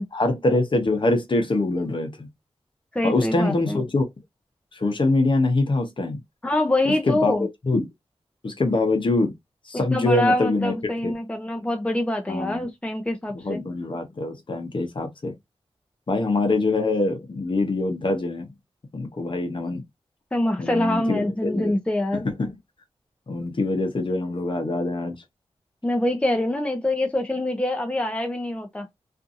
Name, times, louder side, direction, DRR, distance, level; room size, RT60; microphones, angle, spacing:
voice 1, 0.0-2.3 3.0-4.0 4.7-6.2 7.0-7.4 7.7-7.9 8.4-9.3 9.7-10.7 11.0-11.1 12.3-12.7 13.4-15.3 16.1-18.5 18.9-19.8 20.6-21.7 22.4-22.5 23.3-25.2, left 2 dB, 50° left, 0.8 m, -24 dB
voice 2, 2.9-3.8 6.4-7.5 9.7-13.6 20.3-22.3 25.8-28.9, left 1 dB, 10° left, 0.6 m, -25 dB
2.6 x 2.5 x 2.5 m
wide cardioid pair, 65°, 11 cm